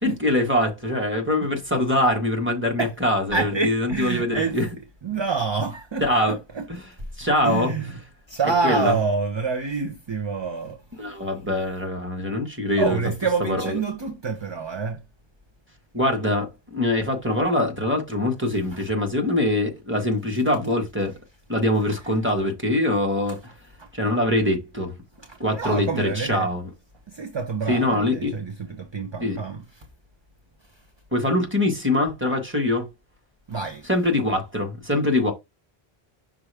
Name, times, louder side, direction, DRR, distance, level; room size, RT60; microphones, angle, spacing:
voice 1, 0.0-4.7 5.1-5.2 6.0-6.4 6.7-6.9 7.2-7.7 8.6-9.0 11.0-13.0 13.4-13.8 15.9-21.1 21.5-23.4 23.9-24.9 25.4-26.7 27.7-28.3 29.2-29.4 31.1-32.9 33.9-35.3, left 1 dB, 10° right, 1.6 m, -23 dB
voice 2, 3.3-4.6 5.0-6.7 7.4-8.0 8.3-10.8 12.8-15.0 18.7-18.8 23.8-23.9 25.2-26.5 27.1-29.8 33.5-33.9, right 4 dB, 30° right, 0.6 m, -27 dB
6.0 x 4.8 x 3.4 m
omnidirectional pair, 1.1 m